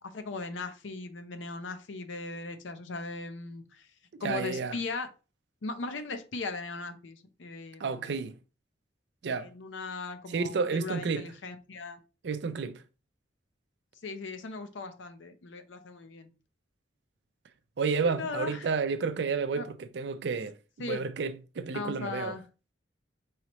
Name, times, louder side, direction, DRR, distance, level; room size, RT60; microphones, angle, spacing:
voice 1, 0.0-3.9 4.2-5.1 5.6-8.2 9.2-12.0 14.0-16.3 18.0-18.7 19.6-19.7 20.8-21.0 21.7-22.4, left 3 dB, 90° left, 0.7 m, -38 dB
voice 2, 4.2-4.7 7.8-8.3 9.2-9.5 10.3-11.2 12.2-12.8 17.8-20.6 20.8-22.3, right 5 dB, 65° right, 0.4 m, -31 dB
4.8 x 3.0 x 2.9 m
head